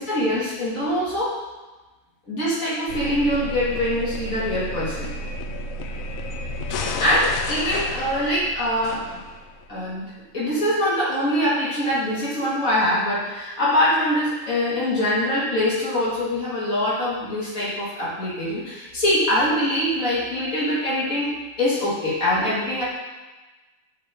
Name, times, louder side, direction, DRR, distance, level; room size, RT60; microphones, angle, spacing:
voice 1, 0.0-1.4 2.3-5.1 7.0-9.1 9.7-21.3 21.6-22.8, left 1 dB, 45° left, -8 dB, 2.3 m, -23 dB
sound 1, 2.9-9.7, left 1 dB, 80° left, 0.7 m, -31 dB
8.0 x 4.4 x 3.5 m, 1.2 s
omnidirectional pair, 2.0 m